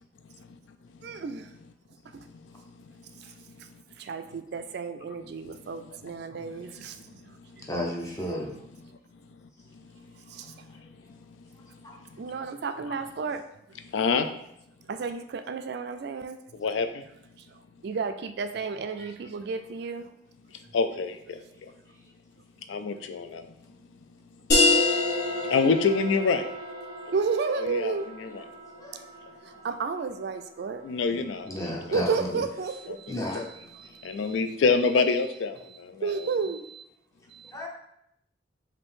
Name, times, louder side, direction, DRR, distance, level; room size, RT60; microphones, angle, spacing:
voice 1, 1.0-1.5 2.1-2.3 4.0-7.3 10.3-10.5 12.2-13.4 14.9-16.4 17.8-20.1 27.1-28.1 29.6-30.8 31.9-33.2 33.7-34.1 36.0-36.8 37.3-37.5, right 5 dB, 60° right, 9 dB, 0.3 m, -32 dB
voice 2, 7.7-8.5 11.8-11.9 19.0-19.1 28.8-29.0 31.5-32.4 33.1-33.4 37.5-37.7, left 1 dB, 15° left, -2 dB, 0.8 m, -32 dB
voice 3, 13.9-14.3 16.6-16.9 20.7-21.1 22.7-23.4 25.5-26.5 27.5-28.4 30.8-31.8 32.9-33.0 33.3-33.4 34.0-35.6 36.0-36.3, left 4 dB, 85° left, 9 dB, 0.4 m, -26 dB
sound 1, 24.5-29.9, left 2 dB, 55° left, 1.4 m, -28 dB
5.2 x 2.7 x 3.6 m, 0.76 s
head